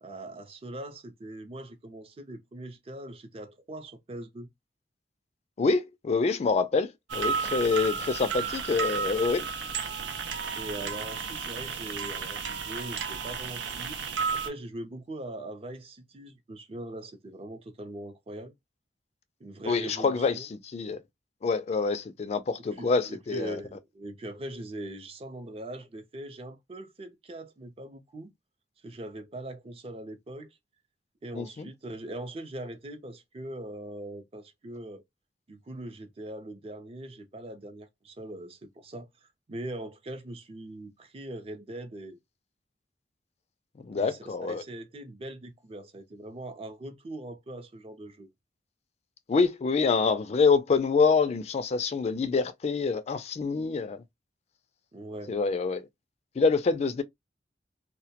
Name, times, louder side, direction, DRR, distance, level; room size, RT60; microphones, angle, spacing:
voice 1, 0.0-4.5 10.5-14.0 14.3-18.5 19.4-20.5 22.8-28.3 28.8-30.5 31.2-35.0 35.5-42.2 43.9-48.3 54.9-55.4, right 1 dB, 35° right, 0.5 m, -41 dB
voice 2, 5.6-9.5 19.7-21.0 21.4-23.6 31.3-31.7 43.8-44.6 49.3-54.0 55.3-55.9 56.4-57.0, left 4 dB, 35° left, 0.3 m, -26 dB
sound 1, 7.1-14.5, right 6 dB, 85° right, 0.5 m, -33 dB
2.2 x 2.1 x 2.7 m
head